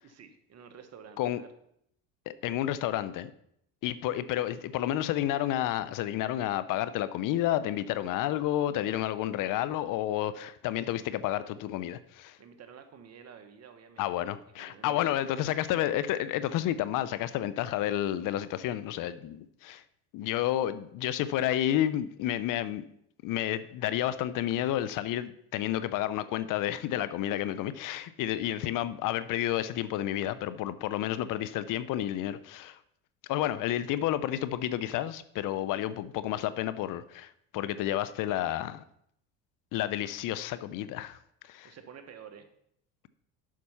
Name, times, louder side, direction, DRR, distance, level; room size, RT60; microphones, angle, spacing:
voice 1, 0.0-1.5 10.9-11.1 12.4-14.3 14.6-15.4 41.6-42.5, right 7 dB, 45° right, 1.3 m, -50 dB
voice 2, 2.3-3.3 3.8-12.4 14.0-19.8 20.1-22.8 23.2-32.8 33.3-38.8 39.7-41.2 41.5-41.7, left 12 dB, 60° left, 0.6 m, -30 dB
7.2 x 6.0 x 5.7 m
supercardioid pair, 90°, 37 cm